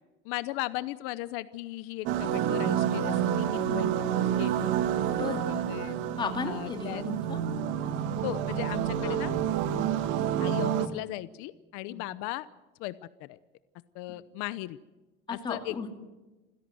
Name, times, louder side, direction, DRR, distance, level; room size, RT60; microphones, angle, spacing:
voice 1, 0.2-4.0 4.4-4.7 5.4-6.0 6.4-7.0 8.2-9.3 10.4-12.5 12.8-13.4 13.9-14.8 15.3-15.8, left 17 dB, 80° left, 15 dB, 0.8 m, -37 dB
sound 1, 2.1-10.9, right 9 dB, 65° right, 1.6 m, -29 dB
voice 2, 5.1-5.4 6.2-7.4 9.0-9.2 11.9-12.0 15.3-15.9, left 5 dB, 20° left, 5 dB, 2.4 m, -35 dB
27.5 x 16.5 x 7.8 m, 1.1 s
cardioid pair, 180°, 21 cm